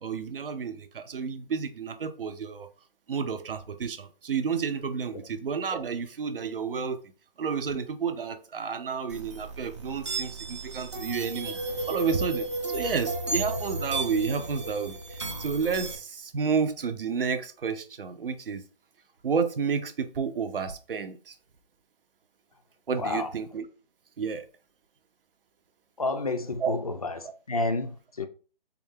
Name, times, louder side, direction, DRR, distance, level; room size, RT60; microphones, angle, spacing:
voice 1, 0.0-2.7 3.1-7.0 7.4-18.6 19.2-21.3 22.9-23.7 24.2-24.4 26.6-26.8 27.2-27.3, right 6 dB, 65° right, 0.7 m, -31 dB
sound 1, 9.1-16.0, right 2 dB, 30° right, 0.5 m, -34 dB
voice 2, 23.0-23.3 26.0-28.3, left 3 dB, 40° left, 0.4 m, -30 dB
3.8 x 2.3 x 3.5 m
hypercardioid pair, 170°, 30 cm